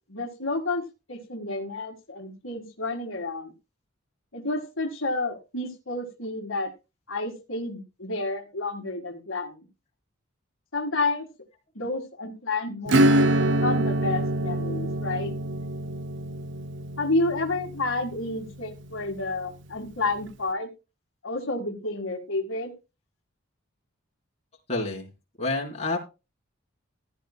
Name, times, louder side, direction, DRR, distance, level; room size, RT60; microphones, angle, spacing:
voice 1, 0.1-0.8 1.1-3.5 4.3-6.7 7.1-9.7 10.7-11.3 11.8-15.3 17.0-20.7 21.2-22.7, left 2 dB, 70° left, 2 dB, 1.8 m, -30 dB
Acoustic guitar / Strum, 12.9-19.1, right 1 dB, 60° right, 0.6 m, -25 dB
voice 2, 24.7-25.1 25.4-26.0, left 2 dB, 30° left, -2 dB, 3.8 m, -28 dB
15.5 x 11.0 x 2.2 m, 0.28 s
head